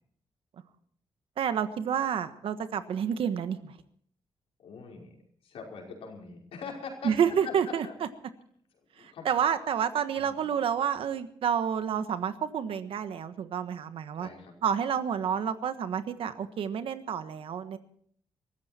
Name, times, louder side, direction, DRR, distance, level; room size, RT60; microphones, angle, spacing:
voice 1, 1.4-3.7 7.0-7.9 9.0-14.3 14.6-17.8, right 8 dB, 70° right, 10 dB, 1.4 m, -29 dB
voice 2, 4.6-5.2 5.4-7.1 7.4-8.0 8.9-9.3 10.2-10.4 14.2-14.6, left 5 dB, 80° left, 0 dB, 5.4 m, -42 dB
23.0 x 14.0 x 4.4 m, 0.62 s
cardioid pair, 110°, 10 cm